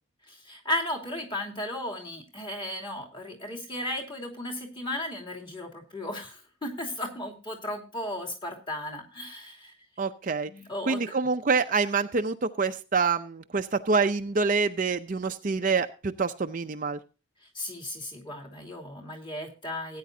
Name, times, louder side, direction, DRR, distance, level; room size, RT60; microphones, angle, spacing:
voice 1, 0.3-9.7 10.5-11.0 17.5-20.0, left 1 dB, 25° left, 1 dB, 2.9 m, -35 dB
voice 2, 10.0-10.5 10.9-17.0, right 4 dB, 40° right, 8 dB, 0.5 m, -26 dB
17.5 x 9.4 x 2.7 m, 0.32 s
head